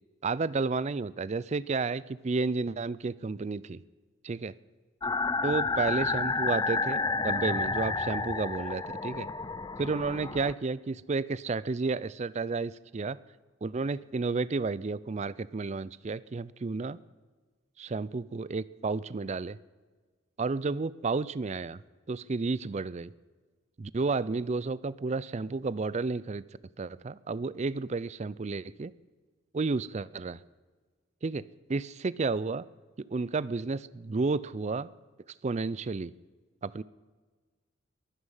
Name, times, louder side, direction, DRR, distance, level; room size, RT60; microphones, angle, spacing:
voice 1, 0.2-3.8 4.2-4.5 5.4-9.3 9.8-13.2 13.6-17.0 17.8-19.6 20.4-21.8 22.1-23.1 23.8-26.4 26.8-28.9 29.5-30.4 31.2-32.6 33.0-34.9 35.4-36.1 36.6-36.8, right 4 dB, 30° right, 19 dB, 0.4 m, -31 dB
sound 1, 5.0-10.5, left 3 dB, 20° left, 0.5 m, -30 dB
22.5 x 9.7 x 5.6 m, 1.4 s
head